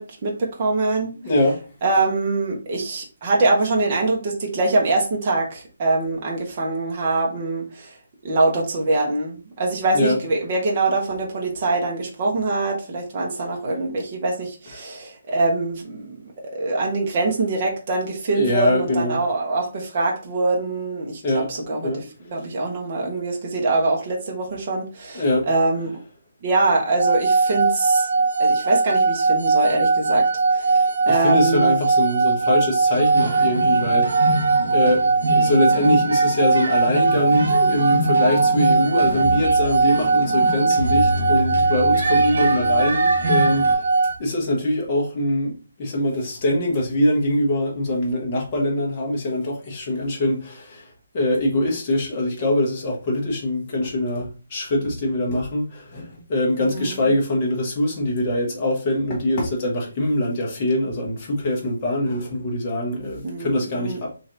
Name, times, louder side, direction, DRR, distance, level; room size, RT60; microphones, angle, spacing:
voice 1, 0.0-1.1 1.8-8.0 8.2-25.9 26.4-28.1 28.4-30.8 31.1-31.7 56.6-57.1 63.2-64.0, right 2 dB, 25° right, 0.8 m, -24 dB
voice 2, 1.2-1.6 9.9-10.2 18.3-19.2 21.2-21.5 21.8-22.0 25.1-25.5 30.7-34.4 34.7-43.9 44.2-64.2, left 1 dB, 20° left, 0.9 m, -23 dB
sound 1, 27.0-44.2, right 4 dB, 85° right, 0.4 m, -20 dB
sound 2, 32.9-43.7, right 1 dB, 60° right, 1.2 m, -27 dB
3.1 x 2.8 x 3.8 m
hypercardioid pair, 175°, 0 cm